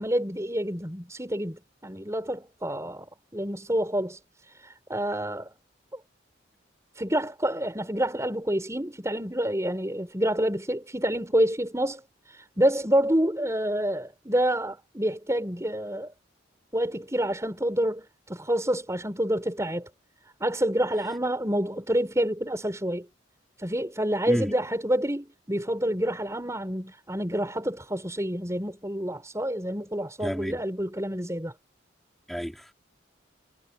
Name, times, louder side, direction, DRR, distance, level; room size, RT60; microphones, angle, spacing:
voice 1, 0.0-3.1 3.3-4.2 4.6-5.5 7.0-12.0 12.3-16.1 16.7-19.9 20.4-23.0 23.6-31.5, right 1 dB, 15° right, 6.7 m, -28 dB
voice 2, 30.2-30.6 32.3-32.7, equal, ahead, 4.3 m, -30 dB
head